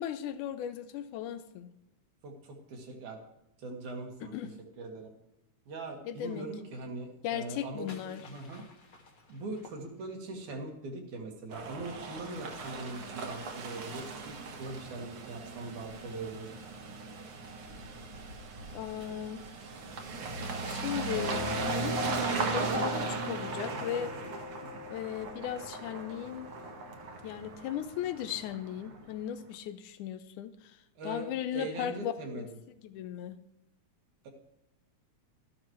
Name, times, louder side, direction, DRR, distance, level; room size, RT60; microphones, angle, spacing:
voice 1, 0.0-1.7 4.2-4.5 6.1-6.5 7.2-8.2 18.7-19.5 20.7-21.4 21.7-22.9 23.3-24.1 24.9-26.5 27.2-30.7 31.0-32.5 32.8-33.4, left 10 dB, 80° left, 11 dB, 2.2 m, -37 dB
voice 2, 2.2-3.2 3.6-4.3 4.8-5.1 5.7-8.6 9.3-16.5 22.6-23.1 23.6-24.3 24.6-24.9 31.0-31.3 31.5-32.6 34.2-34.3, right 2 dB, 75° right, 2 dB, 3.2 m, -41 dB
sound 1, 7.3-10.4, left 3 dB, 45° left, 1.7 m, -55 dB
sound 2, 11.5-29.1, right 4 dB, 55° right, 1.9 m, -38 dB
Mallet percussion, 21.1-27.5, left 10 dB, 65° left, 2.3 m, -43 dB
13.0 x 11.5 x 3.1 m, 0.88 s
omnidirectional pair, 3.5 m